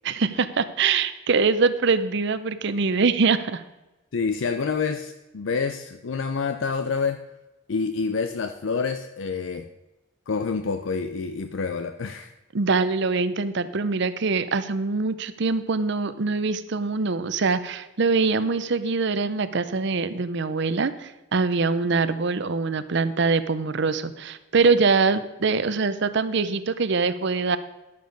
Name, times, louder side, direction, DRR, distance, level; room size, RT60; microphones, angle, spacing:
voice 1, 0.0-3.6 12.5-27.6, right 4 dB, 65° right, 13 dB, 0.7 m, -23 dB
voice 2, 4.1-7.2 7.7-9.7 10.3-12.3, left 5 dB, 70° left, 8 dB, 0.5 m, -27 dB
11.5 x 6.8 x 5.2 m, 1.0 s
head